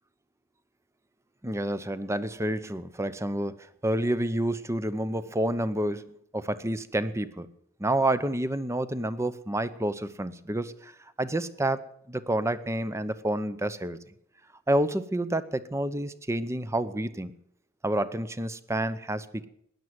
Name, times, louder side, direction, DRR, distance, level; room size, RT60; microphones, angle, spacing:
voice 1, 1.4-3.6 3.8-7.5 7.8-10.9 11.2-14.0 14.7-17.3 17.8-19.5, right 1 dB, 15° right, 14 dB, 0.8 m, -29 dB
16.0 x 11.0 x 7.8 m, 0.70 s
head